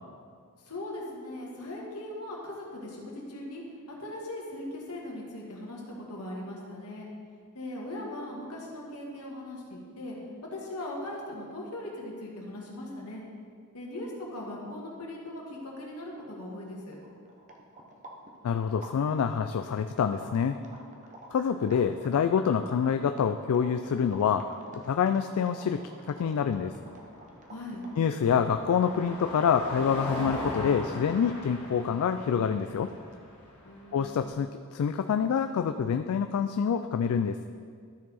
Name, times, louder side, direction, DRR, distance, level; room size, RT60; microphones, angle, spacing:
voice 1, 0.6-3.6 3.9-5.8 6.1-7.1 7.5-10.2 10.5-13.2 13.7-17.0 27.5-27.8 33.6-34.3, left 1 dB, 85° left, -3 dB, 1.8 m, -39 dB
sound 1, 16.1-16.2 16.3-28.1, right 1 dB, 35° right, 0.9 m, -50 dB
voice 2, 18.4-20.6 21.3-25.8 26.1-26.7 28.0-32.9 33.9-37.4, left 7 dB, 70° left, 8 dB, 0.3 m, -27 dB
Car passing by, 26.0-34.3, left 1 dB, 50° left, 2.2 m, -40 dB
13.0 x 4.6 x 4.2 m, 2.1 s
head